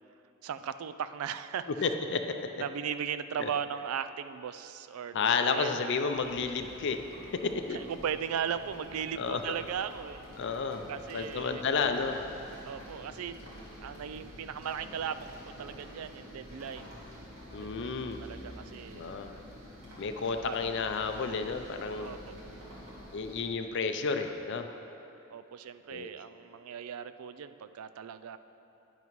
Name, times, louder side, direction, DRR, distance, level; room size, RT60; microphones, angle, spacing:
voice 1, 0.4-1.9 2.6-5.7 7.7-10.2 10.9-11.6 12.6-13.4 13.8-17.1 17.6-19.1 20.4-20.6 21.9-22.3 25.3-28.4, right 8 dB, 85° right, 12 dB, 0.4 m, -37 dB
voice 2, 1.8-2.3 3.4-3.5 5.1-7.0 7.4-7.8 9.2-9.6 10.4-10.8 11.1-12.2 17.5-18.2 18.9-19.4 20.0-22.2 23.1-24.7 25.9-26.1, left 5 dB, 55° left, 6 dB, 0.5 m, -31 dB
sound 1, 6.1-23.4, equal, 70° right, 2.4 m, -48 dB
10.5 x 9.7 x 3.1 m, 2.9 s
head